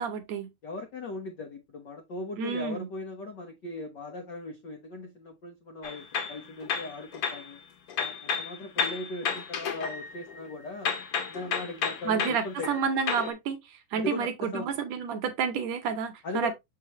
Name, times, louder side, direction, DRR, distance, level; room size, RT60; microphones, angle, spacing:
voice 1, 0.0-0.5 2.4-2.9 12.1-16.5, right 6 dB, 70° right, 1.8 m, -30 dB
voice 2, 0.6-7.6 8.0-10.9 11.3-12.9 13.9-14.7 16.2-16.5, left 2 dB, 85° left, 0.9 m, -38 dB
sound 1, 5.8-7.5 7.9-10.5 10.9-13.3, left 6 dB, 55° left, 1.8 m, -32 dB
6.7 x 4.8 x 3.0 m
omnidirectional pair, 3.6 m